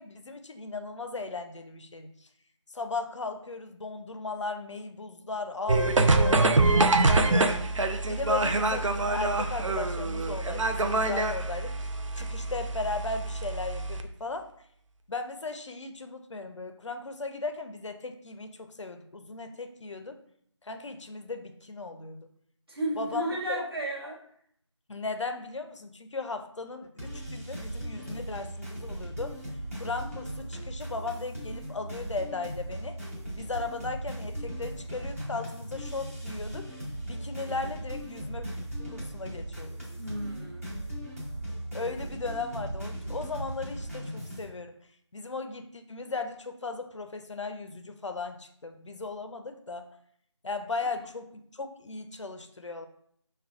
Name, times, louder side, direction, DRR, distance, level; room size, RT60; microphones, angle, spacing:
voice 1, 0.0-2.1 2.7-7.5 8.1-11.8 12.2-14.5 15.1-20.2 20.6-22.3 23.0-23.6 24.9-29.3 29.7-33.0 33.3-36.7 37.1-38.4 38.8-39.8 41.7-44.7 45.1-49.9 50.4-52.9, left 3 dB, 70° left, 7 dB, 0.4 m, -37 dB
sound 1, 5.7-14.0, right 2 dB, 85° right, 0.4 m, -25 dB
voice 2, 22.7-24.2 40.0-40.8, right 1 dB, 50° right, -2 dB, 0.9 m, -33 dB
sound 2, 27.0-44.4, right 1 dB, 30° right, 1.0 m, -38 dB
4.8 x 2.2 x 2.3 m, 0.66 s
figure-of-eight pair, 170°, 16 cm